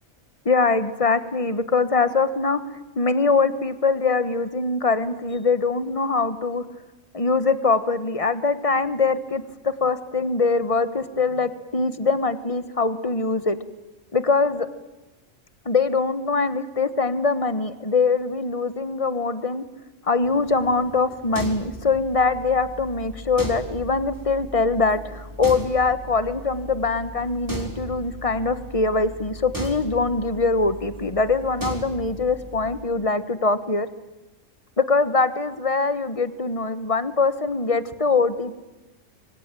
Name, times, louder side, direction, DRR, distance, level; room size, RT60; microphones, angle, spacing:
voice 1, 0.4-2.6 2.9-6.6 7.1-13.6 14.1-14.7 15.6-19.6 20.1-33.9 34.8-38.6, left 4 dB, 25° left, 12 dB, 1.4 m, -23 dB
sound 1, 20.2-32.8, right 1 dB, 15° right, 4.1 m, -37 dB
26.5 x 24.0 x 9.2 m, 1.0 s
omnidirectional pair, 1.4 m